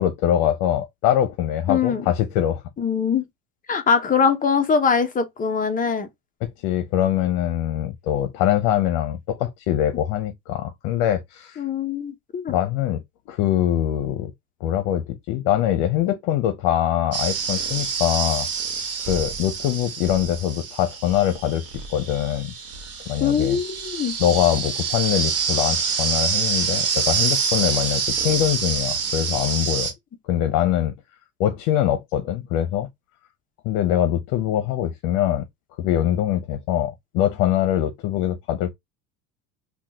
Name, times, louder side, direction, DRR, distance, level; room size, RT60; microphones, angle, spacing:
voice 1, 0.0-2.6 6.4-11.6 12.5-14.3 14.6-18.5 19.0-22.5 23.1-23.6 24.2-29.9 30.2-30.9 31.4-32.9 33.6-35.5 35.8-38.7, left 11 dB, 65° left, 0.7 m, -23 dB
voice 2, 1.7-2.1 2.8-3.2 3.7-6.1 11.6-12.6 23.2-24.2, left 6 dB, 20° left, 0.6 m, -22 dB
sound 1, 17.1-29.9, right 6 dB, 35° right, 1.3 m, -26 dB
3.7 x 2.4 x 2.7 m
supercardioid pair, 125°, 44 cm